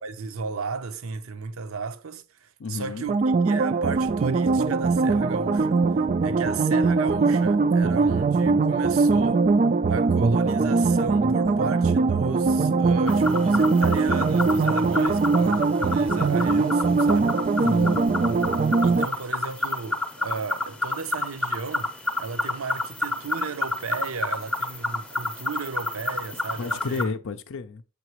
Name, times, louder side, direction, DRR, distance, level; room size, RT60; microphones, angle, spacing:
voice 1, 0.0-5.8 6.2-9.5 9.9-17.3 18.8-21.9 22.2-27.1, right 5 dB, 70° right, 0.7 m, -34 dB
voice 2, 2.6-3.1 17.6-18.2 26.6-27.8, left 4 dB, 60° left, 0.5 m, -31 dB
sound 1, 3.1-19.1, right 4 dB, 35° right, 0.3 m, -21 dB
sound 2, 13.1-27.0, left 2 dB, 5° left, 0.7 m, -30 dB
6.9 x 5.8 x 3.0 m
head